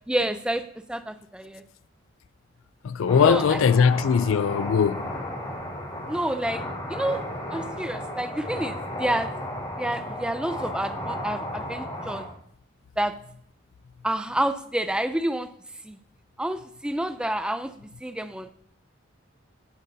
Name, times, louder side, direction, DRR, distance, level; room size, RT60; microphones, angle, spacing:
voice 1, 0.1-0.6 0.9-1.6 3.2-3.9 6.1-6.6 6.9-7.2 7.5-9.3 9.8-12.3 13.0-13.1 14.0-15.5 15.8-16.0 16.4-18.5, right 1 dB, 5° right, 0.4 m, -28 dB
voice 2, 2.8-5.1, left 6 dB, 85° left, 0.4 m, -20 dB
sound 1, 3.1-12.2, left 1 dB, 25° left, 3.2 m, -34 dB
17.5 x 8.1 x 2.7 m
head